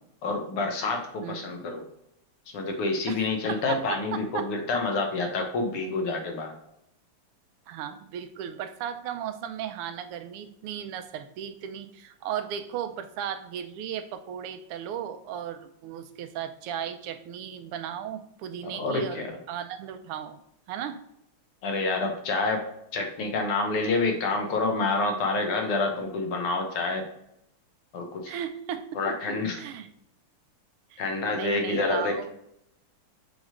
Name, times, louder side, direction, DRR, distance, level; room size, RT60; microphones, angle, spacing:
voice 1, 0.2-1.9 2.5-6.5 18.7-19.4 21.6-27.0 27.9-28.4 29.0-29.6 31.0-32.2, left 3 dB, 90° left, 3 dB, 2.1 m, -28 dB
voice 2, 3.1-4.5 7.7-20.4 20.7-21.0 28.3-29.0 29.6-29.9 30.9-31.0 31.3-32.3, right 9 dB, 90° right, 9 dB, 1.6 m, -36 dB
6.1 x 3.2 x 4.9 m, 0.78 s
omnidirectional pair, 2.4 m